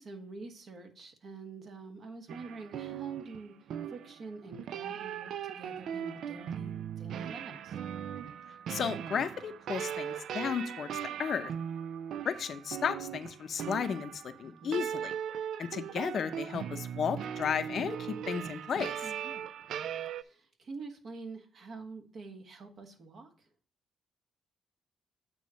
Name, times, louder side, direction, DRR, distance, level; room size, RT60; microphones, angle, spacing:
voice 1, 0.0-3.5 3.9-7.8 14.4-14.9 19.0-19.4 20.2-23.3, right 3 dB, 55° right, 5 dB, 1.5 m, -46 dB
sound 1, 2.3-20.2, right 9 dB, 70° right, 0.4 m, -39 dB
voice 2, 8.7-10.9 11.2-11.5 12.2-14.1 14.4-15.1 15.6-18.0 18.3-18.9, left 7 dB, 55° left, 10 dB, 0.6 m, -33 dB
8.5 x 3.0 x 6.3 m, 0.44 s
cardioid pair, 90°, 0 cm